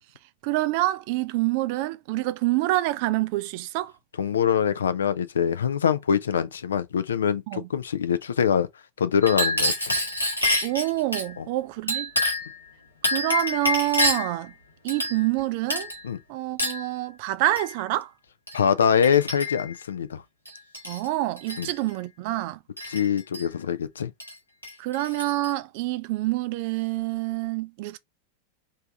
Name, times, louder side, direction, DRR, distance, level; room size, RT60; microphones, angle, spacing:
voice 1, 0.4-3.9 7.5-7.7 10.6-12.1 13.1-14.5 14.8-15.9 16.3-18.1 20.9-22.6 24.8-28.0, right 17 dB, 45° right, 0.4 m, -27 dB
voice 2, 4.2-8.7 9.0-10.0 11.4-11.5 16.0-16.2 18.5-20.2 21.6-21.7 22.9-24.1, left 7 dB, 65° left, 0.4 m, -24 dB
Chink clink, 9.2-11.3 11.9-12.6 13.0-14.4 14.9-15.4 15.7-16.0 16.6-16.9 17.6-17.7 18.5-18.6 19.0-19.7 20.5-21.1 21.4-21.7 22.8-23.4 24.2-24.3 24.6-25.5, left 1 dB, 85° left, 1.4 m, -27 dB
3.3 x 2.7 x 3.2 m
figure-of-eight pair, 90°, 0 cm